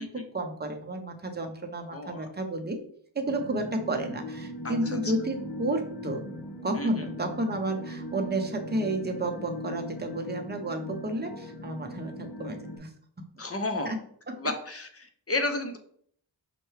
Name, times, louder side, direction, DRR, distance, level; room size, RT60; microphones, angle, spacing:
voice 1, 0.0-2.8 3.1-6.2 6.6-12.9 13.9-14.0 14.3-14.4, right 1 dB, 20° right, 4 dB, 0.7 m, -31 dB
voice 2, 1.9-2.3 4.6-5.0 6.7-7.1 13.4-13.9 14.4-15.8, left 2 dB, 30° left, 5 dB, 0.6 m, -32 dB
sound 1, 3.3-12.8, left 1 dB, 60° left, 0.8 m, -39 dB
5.6 x 2.2 x 3.1 m, 0.62 s
cardioid pair, 55°, 47 cm